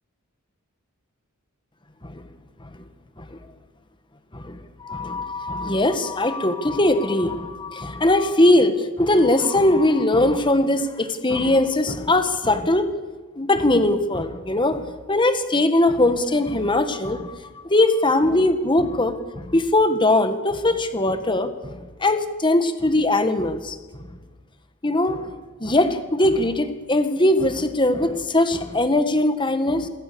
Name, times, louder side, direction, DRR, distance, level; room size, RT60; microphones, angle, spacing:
voice 1, 4.3-12.9 13.4-17.4 17.6-23.8 24.1-24.2 24.8-25.3 25.6-29.9, left 1 dB, 20° left, 9 dB, 1.8 m, -21 dB
28.0 x 23.0 x 7.1 m, 1.3 s
head